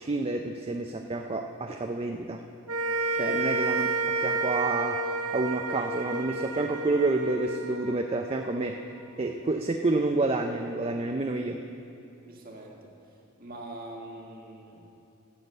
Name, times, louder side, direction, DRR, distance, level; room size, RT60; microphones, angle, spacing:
voice 1, 0.0-2.4 3.1-3.9 4.2-5.0 5.3-8.9 9.2-11.6, right 2 dB, 25° right, 4 dB, 0.4 m, -29 dB
sound 1, 2.7-9.1, right 3 dB, 85° right, 0.7 m, -31 dB
voice 2, 12.2-12.9 13.4-14.8, right 1 dB, 40° right, 0 dB, 1.7 m, -43 dB
12.0 x 7.1 x 7.8 m, 2.8 s
head